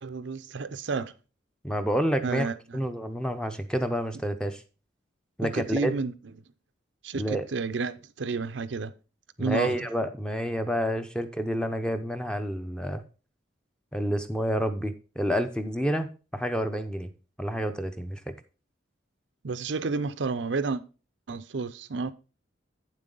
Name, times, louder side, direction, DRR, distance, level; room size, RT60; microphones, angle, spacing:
voice 1, 0.0-1.1 2.2-2.8 5.4-6.1 7.0-8.9 9.4-9.8 19.4-20.8 21.3-22.1, right 4 dB, 70° right, 0.6 m, -31 dB
voice 2, 1.6-2.5 2.7-4.6 5.4-5.9 7.1-7.5 9.4-13.0 13.9-17.1 17.4-18.2, equal, 5° left, 0.7 m, -29 dB
9.0 x 7.4 x 3.9 m
head